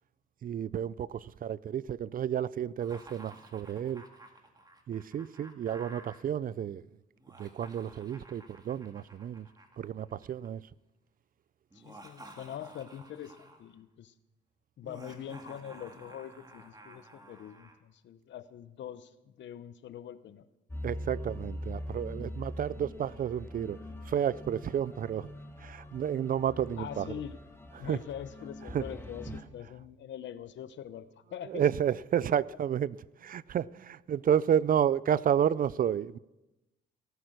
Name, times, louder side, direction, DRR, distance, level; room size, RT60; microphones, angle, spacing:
voice 1, 0.4-4.0 4.9-6.8 7.4-9.5 9.8-10.6 20.8-23.8 24.1-25.3 25.6-27.1 27.8-28.0 28.7-28.8 31.5-36.2, right 9 dB, 45° right, 0.4 m, -31 dB
Laughter, 2.8-6.2 7.2-10.5 11.7-13.7 14.8-17.8, right 1 dB, 20° right, 1.9 m, -52 dB
voice 2, 11.7-14.1 14.8-20.5 26.8-27.4 27.8-31.6, left 10 dB, 65° left, 0.9 m, -43 dB
sound 1, 20.7-29.4, left 1 dB, 10° left, 1.6 m, -42 dB
17.5 x 9.5 x 6.5 m
cardioid pair, 90°, 20 cm